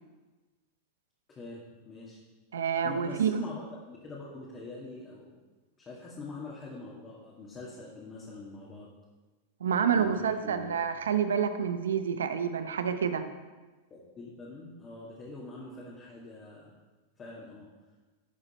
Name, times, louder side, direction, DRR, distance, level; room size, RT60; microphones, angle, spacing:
voice 1, 1.3-2.2 2.8-5.3 5.8-8.9 9.9-10.8 13.9-16.7 17.2-17.7, left 2 dB, 25° left, -6 dB, 2.0 m, -44 dB
voice 2, 2.5-3.3 9.6-13.2, right 7 dB, 90° right, 9 dB, 0.7 m, -28 dB
11.0 x 5.0 x 4.3 m, 1.2 s
hypercardioid pair, 115°, 0 cm